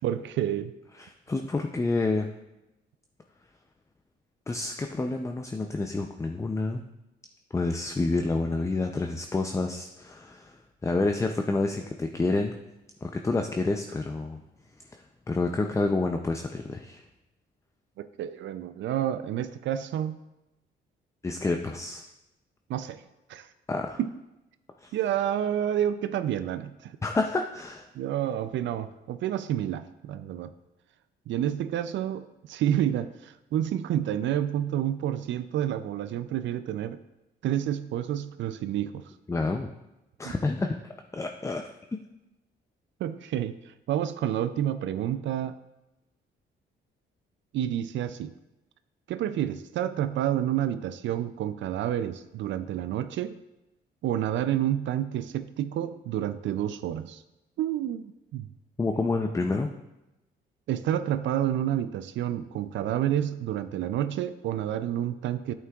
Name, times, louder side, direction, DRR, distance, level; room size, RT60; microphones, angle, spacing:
voice 1, 0.0-0.7 18.0-20.2 22.7-23.0 23.3-23.5 24.0-24.1 24.9-27.0 27.9-30.5 31.3-37.0 37.4-39.1 40.2-40.3 43.0-45.6 47.5-48.3 49.1-53.4 54.0-57.2 57.6-58.5 60.7-65.5, right 11 dB, 70° right, 12 dB, 0.4 m, -29 dB
voice 2, 1.0-2.3 4.5-6.8 7.5-12.6 13.0-14.4 14.9-17.0 21.2-22.0 23.7-24.0 24.8-24.9 27.0-27.9 39.3-39.7 40.2-41.6 58.8-59.7, left 3 dB, 15° left, 5 dB, 0.5 m, -29 dB
9.5 x 8.5 x 2.4 m, 0.96 s
cardioid pair, 90°, 20 cm